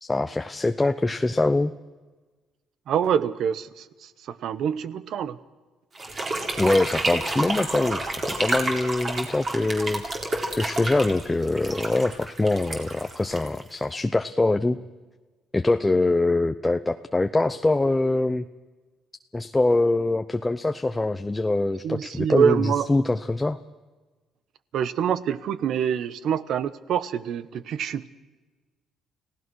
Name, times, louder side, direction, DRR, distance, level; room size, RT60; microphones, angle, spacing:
voice 1, 0.0-1.7 6.6-10.2 10.5-14.8 15.5-18.4 19.3-23.6, left 2 dB, 15° left, 8 dB, 0.7 m, -24 dB
voice 2, 2.9-5.4 21.8-22.9 24.7-28.1, right 8 dB, 65° right, 16 dB, 1.0 m, -25 dB
sound 1, 5.9-14.0, right 2 dB, 30° right, 4.1 m, -30 dB
30.0 x 17.0 x 6.3 m, 1.3 s
cardioid pair, 110°, 0 cm